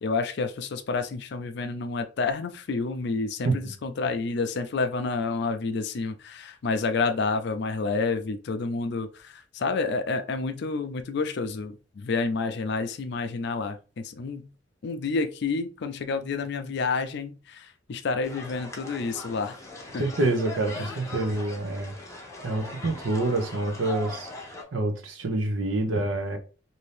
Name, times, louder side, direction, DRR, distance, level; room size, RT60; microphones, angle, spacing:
voice 1, 0.0-14.5 14.8-19.6 19.9-20.0 20.8-21.0, left 4 dB, 65° left, 0.4 m, -29 dB
sound 1, 18.2-24.6, left 1 dB, 15° left, 0.6 m, -40 dB
voice 2, 20.0-21.9 22.4-26.4, right 2 dB, 85° right, 0.7 m, -27 dB
2.7 x 2.6 x 3.3 m
head